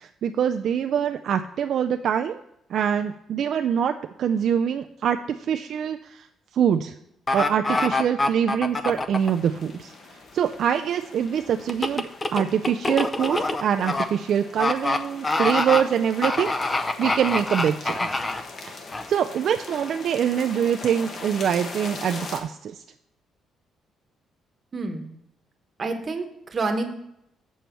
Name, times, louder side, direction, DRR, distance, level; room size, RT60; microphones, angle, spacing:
voice 1, 0.0-2.4 2.7-3.9 4.2-6.3 6.5-6.9 7.3-9.9 10.3-16.7 17.0-18.2 19.1-22.8, right 8 dB, 60° right, 6 dB, 0.3 m, -24 dB
sound 1, 7.3-9.3 11.7-14.1 14.6-15.0 15.2-15.8 16.2-18.4 18.9-19.0, left 2 dB, 20° left, 0.5 m, -25 dB
sound 2, 9.2-22.4, left 3 dB, 45° left, 1.0 m, -41 dB
voice 2, 24.7-25.1 25.8-27.0, right 3 dB, 30° right, 5 dB, 1.1 m, -28 dB
7.3 x 7.0 x 4.4 m, 0.78 s
cardioid pair, 135°, 0 cm